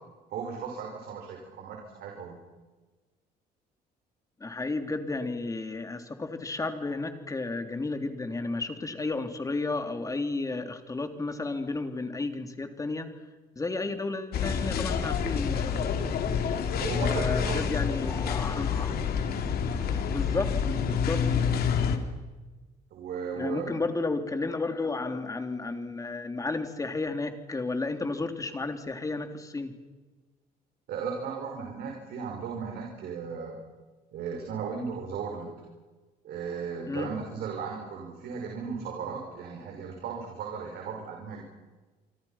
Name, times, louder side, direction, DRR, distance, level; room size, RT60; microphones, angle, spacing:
voice 1, 0.3-2.4 16.8-17.7 22.9-23.8 30.9-33.6 34.1-35.6 36.2-41.4, right 6 dB, 70° right, 1 dB, 5.9 m, -36 dB
voice 2, 4.4-13.1 13.5-15.8 17.0-18.9 20.1-20.5 20.8-21.2 23.3-29.7 36.9-37.1, left 3 dB, 20° left, 6 dB, 3.2 m, -32 dB
sound 1, 14.3-22.0, left 6 dB, 65° left, 3.3 m, -28 dB
29.5 x 24.5 x 5.9 m, 1.3 s
cardioid pair, 110°, 17 cm